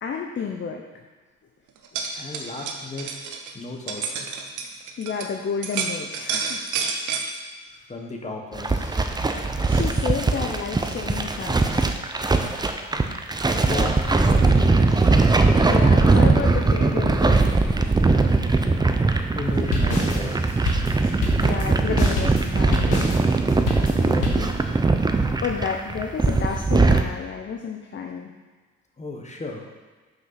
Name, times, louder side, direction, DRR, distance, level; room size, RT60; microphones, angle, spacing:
voice 1, 0.0-0.8 5.0-6.6 9.6-11.9 15.6-17.5 21.4-23.4 25.4-28.3, left 6 dB, 40° left, 2 dB, 0.7 m, -31 dB
sound 1, 1.8-5.3 5.6-7.3, right 5 dB, 80° right, 0.9 m, -29 dB
voice 2, 2.2-3.1 3.5-4.3 7.7-9.1 12.9-13.0 13.6-15.1 19.3-20.7 23.9-24.5 29.0-29.6, left 2 dB, 25° left, 1 dB, 1.4 m, -35 dB
sound 2, 8.5-27.0, right 3 dB, 15° right, 0.5 m, -20 dB
sound 3, 19.4-24.5, left 2 dB, 80° left, 1.6 m, -26 dB
6.2 x 5.2 x 5.8 m, 1.4 s
cardioid pair, 90°, 30 cm